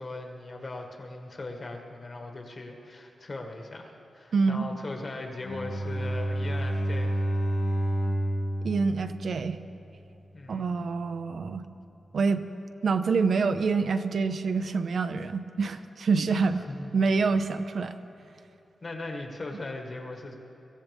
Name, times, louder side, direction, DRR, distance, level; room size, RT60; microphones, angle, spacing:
voice 1, 0.0-7.2 10.3-10.8 16.7-16.9 18.8-20.3, left 2 dB, 40° left, 2 dB, 1.7 m, -39 dB
voice 2, 4.3-4.7 8.6-9.6 10.5-11.6 12.1-12.4 12.8-16.6 16.9-17.9, right 4 dB, 60° right, 9 dB, 0.6 m, -26 dB
Bowed string instrument, 5.4-9.8, right 1 dB, 85° left, 2.0 m, -29 dB
23.5 x 15.0 x 3.5 m, 2.8 s
wide cardioid pair, 125°, 0 cm